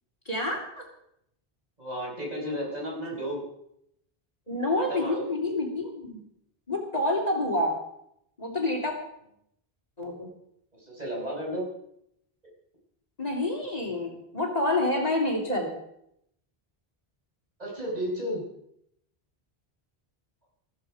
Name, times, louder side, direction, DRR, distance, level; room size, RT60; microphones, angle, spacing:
voice 1, 0.2-0.8 4.5-6.2 6.7-7.8 8.4-8.9 10.0-10.3 13.2-15.7, left 1 dB, 40° left, -1 dB, 3.3 m, -28 dB
voice 2, 1.8-3.4 4.7-5.2 10.8-11.7 17.6-18.4, equal, 40° right, -2 dB, 5.3 m, -33 dB
14.5 x 14.5 x 5.0 m, 0.75 s
omnidirectional pair, 1.0 m